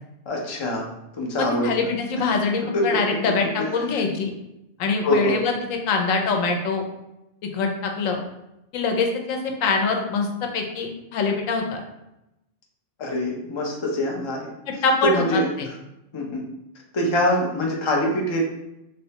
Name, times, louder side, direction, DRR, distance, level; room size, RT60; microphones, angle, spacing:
voice 1, 0.3-1.7 2.2-2.3 2.7-3.0 3.6-3.7 5.0-5.4 13.0-14.5 15.0-15.5 16.1-16.4 16.9-18.5, equal, 50° left, -1 dB, 0.3 m, -24 dB
voice 2, 1.4-4.3 4.8-6.8 7.5-8.2 8.7-10.3 10.5-11.8 14.7-15.7, left 4 dB, 90° left, 3 dB, 1.0 m, -24 dB
3.6 x 2.1 x 2.8 m, 0.88 s
omnidirectional pair, 1.3 m